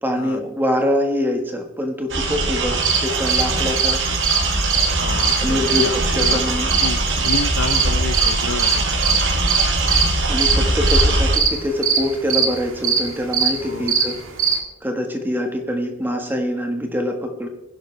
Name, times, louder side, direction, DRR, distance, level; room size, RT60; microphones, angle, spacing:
voice 1, 0.0-4.0 5.4-6.7 7.7-7.8 10.3-14.1 14.8-17.5, left 1 dB, 10° right, 3 dB, 1.5 m, -24 dB
sound 1, 2.1-11.4, right 2 dB, 60° right, 2.1 m, -21 dB
sound 2, 2.7-14.6, right 6 dB, 85° right, 1.9 m, -22 dB
voice 2, 5.0-6.4 6.8-9.2 13.6-13.9, left 4 dB, 85° left, 12 dB, 0.7 m, -30 dB
20.5 x 11.0 x 3.4 m, 0.97 s
head